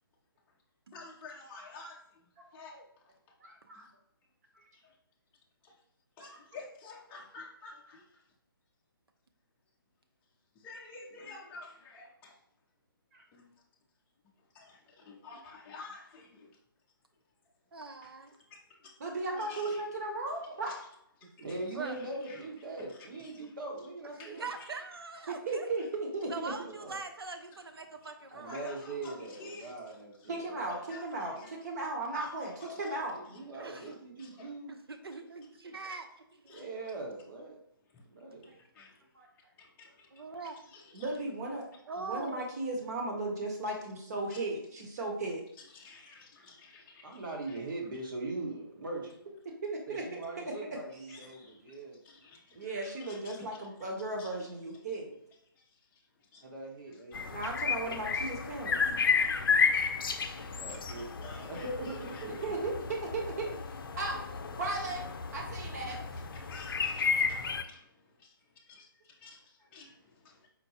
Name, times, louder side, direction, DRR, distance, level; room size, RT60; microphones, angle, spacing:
voice 1, 0.9-3.1 3.7-3.9 4.7-5.0 5.6-5.8 6.2-8.2 10.5-12.4 13.3-13.6 14.4-16.6 18.0-18.1 18.5-18.9 19.4-19.8 20.7-20.9 21.2-22.5 22.9-23.8 24.2-24.7 27.9-28.1 28.4-30.3 30.6-31.6 32.1-33.4 33.8-34.5 35.7-35.9 36.5-36.7 37.9-38.0 38.3-39.1 39.6-41.3 44.3-44.4 45.6-47.7 51.1-53.7 54.2-54.5 55.5-56.5 56.9-57.4 58.1-58.3 58.7-62.5 64.5-64.6 65.6-66.0 66.3-70.5, left 3 dB, 15° left, -2 dB, 0.6 m, -52 dB
voice 2, 3.4-3.8 4.5-4.6 6.2-6.4 13.1-13.2 19.0-20.7 25.3-26.3 30.3-32.5 32.8-33.2 38.5-38.6 39.1-39.3 40.9-41.6 42.0-45.4 49.6-50.5 52.5-55.1 57.3-58.8 62.4-63.6 64.0-64.2 64.6-65.0 65.3-66.0, right 2 dB, 45° right, 1 dB, 1.2 m, -36 dB
voice 3, 17.7-18.4 19.3-19.5 21.2-21.3 21.7-22.0 24.4-25.7 26.3-28.6 33.6-33.9 34.7-36.1 36.3-36.6 40.1-40.6 41.9-42.5, right 4 dB, 85° right, 7 dB, 0.7 m, -42 dB
voice 4, 21.4-24.5 26.6-27.0 28.3-30.6 33.1-34.7 36.5-37.6 38.1-38.5 47.0-49.1 49.9-52.0 56.4-57.2 60.3-62.5, right 2 dB, 60° right, -1 dB, 1.3 m, -41 dB
sound 1, 57.1-67.6, left 5 dB, 65° left, 0.5 m, -32 dB
4.4 x 2.2 x 4.3 m, 0.74 s
hypercardioid pair, 155°, 12 cm